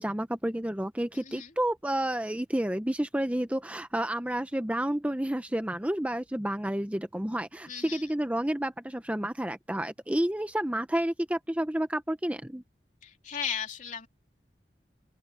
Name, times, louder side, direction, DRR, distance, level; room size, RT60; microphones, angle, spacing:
voice 1, 0.0-12.6, right 1 dB, 10° right, 0.7 m, -30 dB
voice 2, 1.1-1.5 7.7-8.0 13.0-14.1, left 7 dB, 45° left, 3.3 m, -36 dB
open air
head